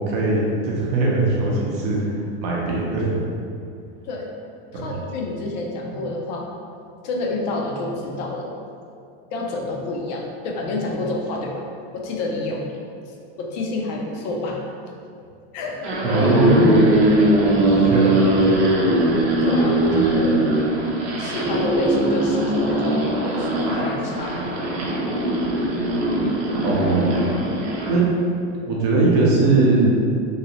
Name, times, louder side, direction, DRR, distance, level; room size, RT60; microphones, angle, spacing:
voice 1, 0.0-2.0 2.4-3.1 4.7-4.9 16.0-16.7 17.5-18.7 19.8-20.1 26.6-27.1 27.9-28.1 28.7-29.9, right 3 dB, 45° right, -4 dB, 0.6 m, -20 dB
voice 2, 4.7-6.5 7.0-8.5 9.3-11.6 11.9-12.6 13.0-14.6 15.5-16.0 19.4-20.4 21.2-24.7, left 2 dB, 45° left, 0 dB, 0.4 m, -28 dB
sound 1, 15.7-28.0, right 1 dB, 75° right, 0.7 m, -20 dB
3.0 x 2.7 x 2.8 m, 2.5 s
supercardioid pair, 170°, 32 cm